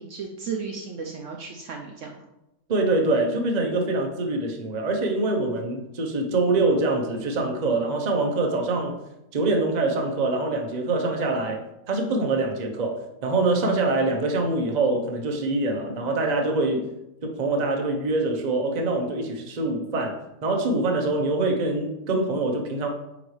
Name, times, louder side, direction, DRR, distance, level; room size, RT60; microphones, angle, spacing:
voice 1, 0.0-2.2, right 5 dB, 65° right, 1 dB, 0.9 m, -34 dB
voice 2, 2.7-8.9 9.3-16.9 17.2-22.9, right 2 dB, 35° right, 2 dB, 0.8 m, -24 dB
8.9 x 3.9 x 3.2 m, 0.90 s
omnidirectional pair, 1.6 m